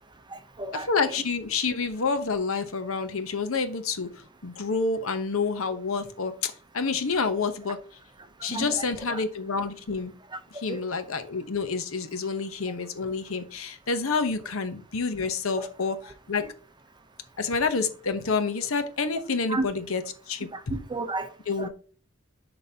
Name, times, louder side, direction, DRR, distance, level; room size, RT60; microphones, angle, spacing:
voice 1, 0.3-0.9 8.4-9.2 10.7-10.8 15.6-15.7 19.5-19.7 20.5-21.3 21.6-21.7, right 2 dB, 20° right, 8 dB, 0.7 m, -33 dB
voice 2, 0.9-4.1 4.4-7.8 8.4-10.1 10.5-16.4 17.4-20.8 21.5-21.7, left 4 dB, 80° left, 9 dB, 0.9 m, -28 dB
10.5 x 3.9 x 2.8 m, 0.39 s
head